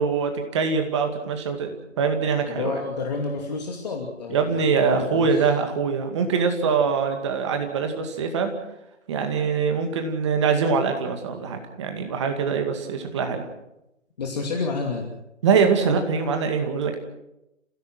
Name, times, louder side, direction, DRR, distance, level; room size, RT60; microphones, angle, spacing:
voice 1, 0.0-2.7 4.3-8.5 9.1-13.4 15.4-17.0, right 5 dB, 20° right, 5 dB, 2.2 m, -23 dB
voice 2, 2.5-4.5 4.8-5.5 14.2-15.1, left 4 dB, 30° left, 1 dB, 2.7 m, -29 dB
30.0 x 16.5 x 6.2 m, 0.89 s
figure-of-eight pair, 160°, 38 cm